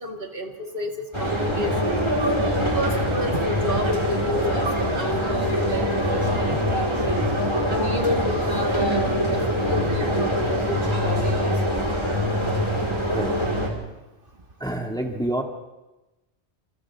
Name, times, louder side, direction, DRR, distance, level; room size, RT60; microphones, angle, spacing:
voice 1, 0.0-2.1 2.6-4.7 4.9-7.2 7.7-9.4 9.7-11.9, right 1 dB, 50° right, 3 dB, 2.2 m, -30 dB
sound 1, 1.1-13.7, equal, 25° right, 4.5 m, -24 dB
voice 2, 14.6-15.4, right 1 dB, 5° left, 2 dB, 2.2 m, -27 dB
28.5 x 28.0 x 3.7 m, 1.0 s
omnidirectional pair, 1.2 m